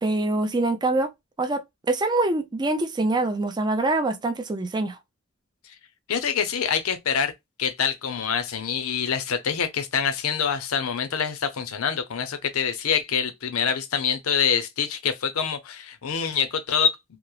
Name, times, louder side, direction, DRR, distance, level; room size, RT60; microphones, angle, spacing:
voice 1, 0.0-1.1 1.4-5.0, right 2 dB, 20° right, 0.4 m, -24 dB
voice 2, 6.1-7.3 7.6-17.0, left 7 dB, 90° left, 0.5 m, -25 dB
2.9 x 2.0 x 2.2 m
head